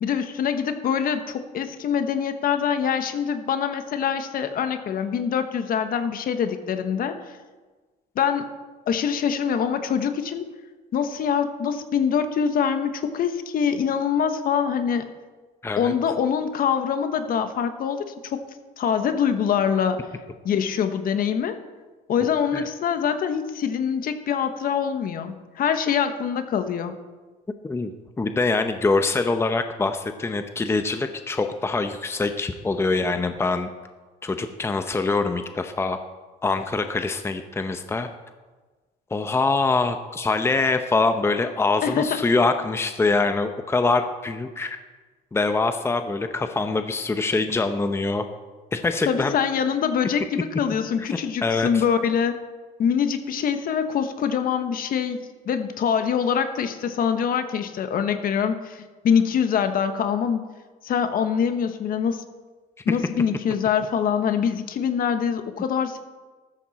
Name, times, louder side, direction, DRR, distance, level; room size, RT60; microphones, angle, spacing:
voice 1, 0.0-7.4 8.1-8.5 8.9-10.5 10.9-15.1 15.8-18.4 18.8-20.1 20.4-21.6 22.1-26.9 41.8-42.2 49.1-52.4 52.8-60.4 60.8-62.2 62.8-66.0, left 7 dB, 60° left, 8 dB, 1.3 m, -24 dB
voice 2, 15.6-15.9 22.5-22.7 27.6-27.9 28.2-33.7 34.2-36.0 36.4-38.1 39.1-44.8 45.3-48.2 48.7-49.3 51.0-51.1 51.4-51.8 62.9-63.0, left 3 dB, 15° left, 8 dB, 0.8 m, -24 dB
14.0 x 13.5 x 4.2 m, 1.3 s
cardioid pair, 110°, 17 cm